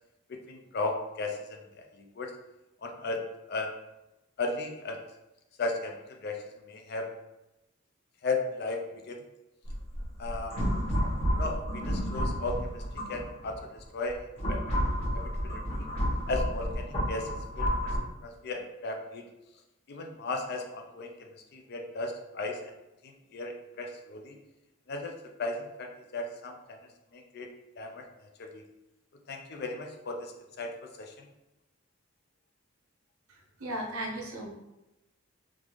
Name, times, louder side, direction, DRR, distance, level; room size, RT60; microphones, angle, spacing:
voice 1, 0.3-2.3 2.8-3.2 3.5-3.7 4.4-5.0 5.6-7.1 8.2-9.2 10.2-10.6 11.3-14.2 14.5-14.6 15.1-15.9 16.3-17.3 17.5-17.8 18.2-19.3 19.9-22.7 23.0-24.4 24.9-25.1 25.4-26.8 27.1-27.5 27.8-28.6 29.3-31.3, left 3 dB, 50° left, 3 dB, 0.4 m, -36 dB
sound 1, 9.7-13.5 14.1-18.0, equal, 30° left, 1.1 m, -31 dB
voice 2, 33.3-34.5, right 1 dB, 80° right, -1 dB, 0.7 m, -36 dB
3.6 x 2.5 x 3.0 m, 0.96 s
head